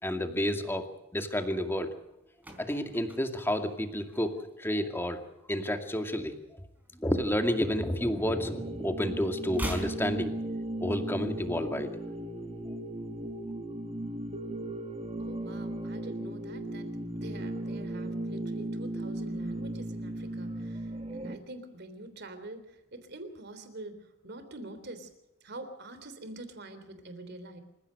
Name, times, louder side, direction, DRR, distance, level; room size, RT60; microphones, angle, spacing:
voice 1, 0.0-1.9 2.6-5.2 5.5-6.3 7.0-10.3 10.8-12.0, equal, 10° left, 6 dB, 2.3 m, -30 dB
sound 1, 2.0-4.7 5.0-5.3 5.6-7.0 7.3-8.7 8.9-11.0 11.3-11.4, equal, 10° right, 3.9 m, -42 dB
sound 2, 8.3-21.4, right 1 dB, 30° right, 1.7 m, -36 dB
voice 2, 15.2-25.1 25.4-27.6, right 2 dB, 55° right, 9 dB, 3.5 m, -45 dB
27.0 x 16.0 x 6.6 m, 0.91 s
head